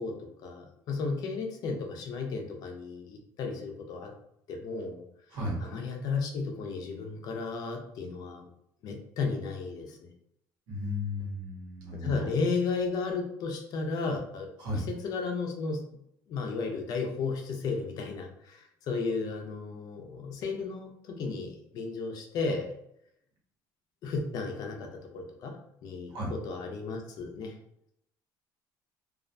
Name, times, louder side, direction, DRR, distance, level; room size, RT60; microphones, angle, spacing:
voice 1, 0.0-4.1 4.5-5.0 5.3-8.5 8.8-10.1 11.9-15.8 16.3-22.7 24.0-25.6 25.8-27.6, left 4 dB, 50° left, 3 dB, 0.5 m, -34 dB
voice 2, 10.7-12.4 14.6-14.9 26.1-26.3, left 1 dB, 70° right, -2 dB, 1.0 m, -34 dB
2.4 x 2.1 x 2.5 m, 0.75 s
cardioid pair, 160°, 8 cm